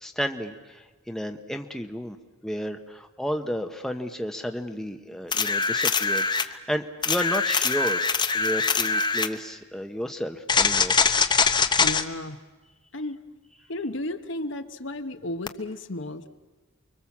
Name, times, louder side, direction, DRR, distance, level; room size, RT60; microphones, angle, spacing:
voice 1, 0.0-2.2 2.4-8.0 8.3-10.9, equal, ahead, 5 dB, 1.1 m, -32 dB
sound 1, 5.3-6.5 7.0-9.3 10.5-12.0 15.5-15.6, left 5 dB, 20° left, 0.9 m, -23 dB
voice 2, 11.8-12.4 12.9-13.2 13.7-16.3, left 1 dB, 60° left, 8 dB, 1.2 m, -33 dB
29.0 x 23.5 x 7.3 m, 1.3 s
head